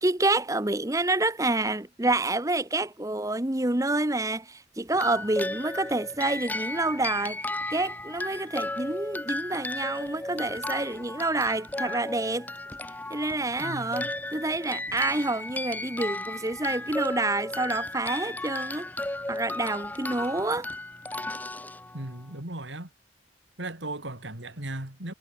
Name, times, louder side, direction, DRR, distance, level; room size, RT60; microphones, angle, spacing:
voice 1, 0.0-7.4 7.7-12.5 13.1-18.9 19.3-20.7, right 2 dB, 20° right, 1.1 m, -28 dB
sound 1, 4.9-22.4, left 2 dB, 10° left, 0.6 m, -35 dB
voice 2, 13.6-14.1 21.9-22.9 23.6-25.1, right 1 dB, 85° right, 4.4 m, -37 dB
head